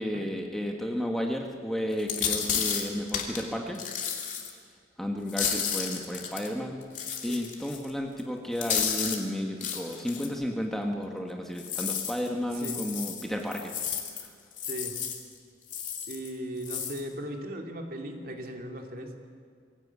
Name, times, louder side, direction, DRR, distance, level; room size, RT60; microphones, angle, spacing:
voice 1, 0.0-3.8 5.0-6.8 7.2-13.7, equal, ahead, 1 dB, 1.6 m, -32 dB
sound 1, 2.0-3.4 3.7-4.5 5.3-6.5 6.9-7.9 8.2-8.3 8.6-9.2 9.6-10.3 11.6-14.3 14.5-15.2 15.7-16.3 16.6-17.0, left 7 dB, 45° left, 2.7 m, -32 dB
voice 2, 12.5-12.8 14.6-15.0 16.1-19.1, right 1 dB, 50° right, 2 dB, 2.7 m, -38 dB
23.5 x 17.0 x 8.4 m, 2.2 s
head